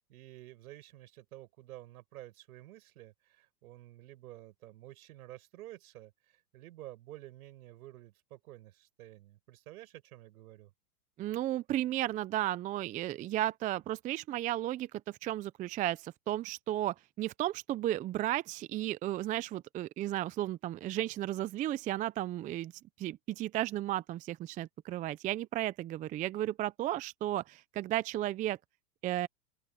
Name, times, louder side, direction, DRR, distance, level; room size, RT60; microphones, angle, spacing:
voice 1, 0.0-10.7, right 16 dB, 65° right, 6.1 m, -51 dB
voice 2, 11.2-22.7 23.0-28.6 29.0-29.3, right 14 dB, 15° right, 0.5 m, -34 dB
open air
hypercardioid pair, 115°, 48 cm